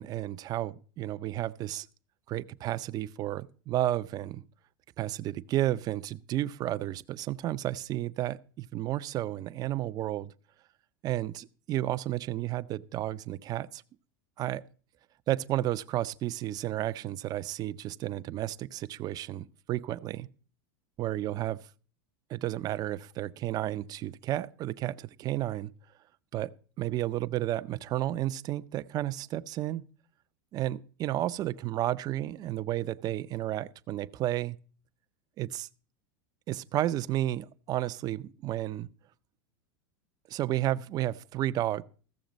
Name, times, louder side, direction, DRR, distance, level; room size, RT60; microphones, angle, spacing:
voice 1, 0.0-1.9 2.3-4.4 5.0-10.3 11.0-13.8 14.4-14.6 15.3-20.3 21.0-21.6 22.3-25.7 26.3-26.5 26.8-29.8 30.5-34.6 35.4-35.7 36.5-38.9 40.3-41.8, right 14 dB, 35° right, 0.5 m, -32 dB
14.5 x 7.0 x 5.2 m
supercardioid pair, 130°, 12 cm